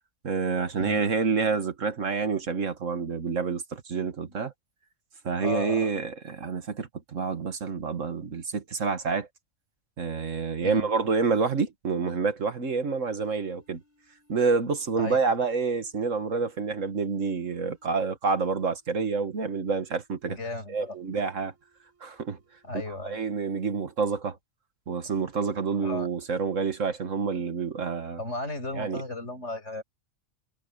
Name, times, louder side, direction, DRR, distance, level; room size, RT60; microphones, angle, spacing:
voice 1, 0.2-4.5 5.2-9.3 10.0-13.8 14.3-20.4 20.7-21.5 22.0-22.4 22.7-24.4 24.9-28.2 28.8-29.0, right 5 dB, 60° right, 1.8 m, -28 dB
voice 2, 5.4-5.9 10.6-10.9 15.0-15.2 20.3-21.2 22.6-23.2 25.7-26.1 28.2-29.8, left 2 dB, 55° left, 8.6 m, -35 dB
sound 1, 12.9-17.9 18.3-20.3 20.8-23.1 23.4-23.9, equal, 10° right, 7.0 m, -68 dB
omnidirectional pair, 1.5 m